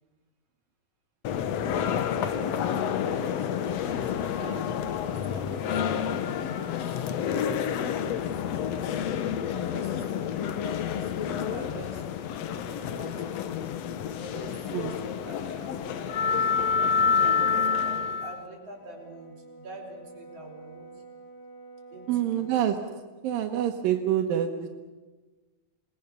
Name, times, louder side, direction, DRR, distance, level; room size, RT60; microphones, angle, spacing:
sound 1, 1.2-18.4, left 7 dB, 65° left, 1.7 m, -29 dB
voice 1, 1.8-3.5 3.8-7.1 7.7-8.3 8.9-13.6 14.1-14.7 15.0-16.5 17.0-21.0 21.9-22.7, right 1 dB, 45° right, -1 dB, 5.7 m, -46 dB
Brass instrument, 18.7-23.0, right 3 dB, 85° left, 4.2 m, -48 dB
voice 2, 22.1-22.8 23.2-24.7, right 10 dB, 85° right, 4 dB, 2.9 m, -26 dB
27.5 x 20.0 x 6.9 m, 1.3 s
omnidirectional pair, 4.0 m